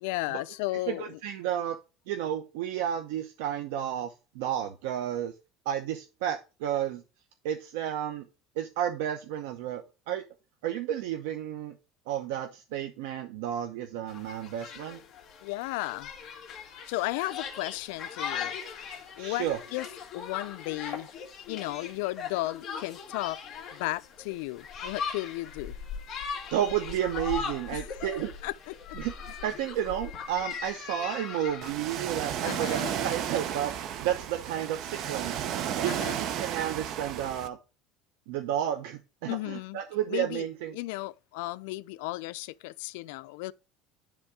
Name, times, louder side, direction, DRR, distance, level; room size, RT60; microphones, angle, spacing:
voice 1, 0.0-1.2 15.4-16.1 16.9-18.5 19.2-19.5 19.7-19.9 20.1-21.1 21.5-23.4 23.7-25.7 27.7-27.9 28.4-29.0 32.4-32.9 35.9-36.2 39.3-39.8 40.1-40.4 40.7-43.5, left 19 dB, 85° left, 0.4 m, -34 dB
voice 2, 0.9-1.8 2.1-5.3 5.7-7.0 7.4-8.2 8.6-10.2 10.6-11.7 12.1-15.0 19.2-19.6 26.5-28.3 29.0-35.4 35.8-37.6 38.3-40.8, right 10 dB, 85° right, 0.8 m, -32 dB
sound 1, 14.1-31.7, left 6 dB, 35° left, 2.0 m, -39 dB
Ocean, 31.6-37.5, right 9 dB, 45° right, 0.7 m, -33 dB
10.5 x 3.6 x 4.8 m
cardioid pair, 155°, 0 cm